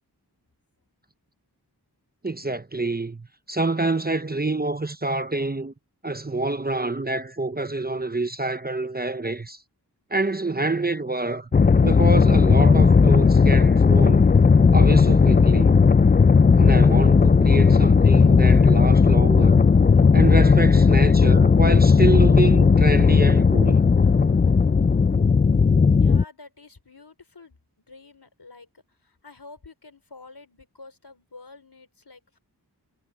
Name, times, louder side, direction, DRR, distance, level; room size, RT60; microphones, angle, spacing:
voice 1, 2.2-5.7 6.0-9.6 10.1-11.5 11.8-14.3 14.7-15.8 16.6-19.7 20.1-23.9, right 2 dB, 25° right, 0.8 m, -27 dB
sound 1, 11.5-26.2, left 5 dB, 25° left, 0.4 m, -16 dB
voice 2, 26.0-28.7 29.0-32.4, left 3 dB, 80° left, 4.8 m, -48 dB
wide cardioid pair, 45°, 40 cm